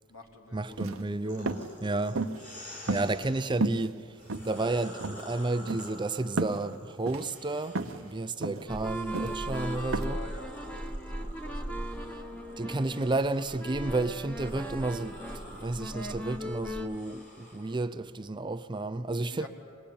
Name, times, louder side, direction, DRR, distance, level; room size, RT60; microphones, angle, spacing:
voice 1, 0.0-1.6 2.9-3.0 9.9-12.7 19.3-19.5, left 2 dB, 75° left, 3.6 m, -50 dB
voice 2, 0.5-2.6 2.9-4.1 4.4-10.2 12.6-19.5, right 2 dB, 20° right, 0.5 m, -32 dB
sound 1, 0.7-1.0 1.5-1.7 2.1-2.5 2.9-3.3 3.6-3.9 4.3-4.7 5.0-5.2 5.7-5.9 6.4-6.6 7.1-7.3 7.7-8.0 8.4-8.7 9.1-9.4 9.9-10.0, right 3 dB, 75° right, 0.9 m, -32 dB
sound 2, 1.3-3.5 4.1-8.2 8.7-17.8, left 1 dB, 35° left, 5.3 m, -49 dB
sound 3, 8.7-16.9, equal, 5° left, 1.4 m, -37 dB
25.0 x 20.5 x 8.6 m
head